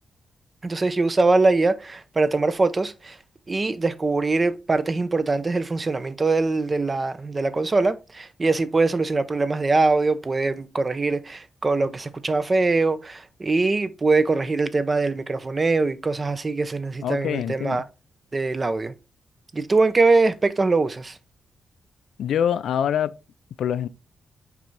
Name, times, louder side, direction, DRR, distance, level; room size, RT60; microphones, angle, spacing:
voice 1, 0.6-3.2 3.5-17.8 18.3-18.9 19.5-21.2, right 3 dB, 30° right, 0.7 m, -22 dB
voice 2, 17.0-17.8 22.2-23.1 23.6-23.9, left 9 dB, 90° left, 0.4 m, -24 dB
6.0 x 4.5 x 4.0 m
cardioid pair, 105°, 0 cm